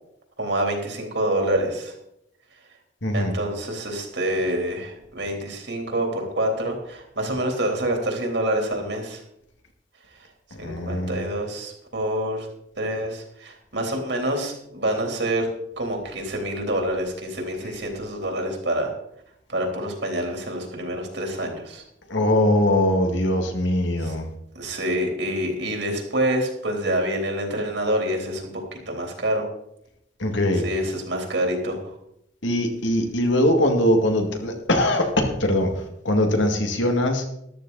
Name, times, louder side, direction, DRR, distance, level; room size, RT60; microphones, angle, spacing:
voice 1, 0.4-1.9 3.1-9.2 10.6-12.5 12.8-15.5 15.8-18.9 19.5-21.8 24.0-24.1 24.6-28.5 28.9-29.5 30.6-31.9, right 1 dB, 65° right, 2 dB, 3.5 m, -27 dB
voice 2, 3.0-3.3 10.6-11.2 22.1-24.3 30.2-30.6 32.4-37.3, left 1 dB, 75° left, 3 dB, 2.3 m, -21 dB
13.5 x 12.5 x 4.1 m, 0.77 s
head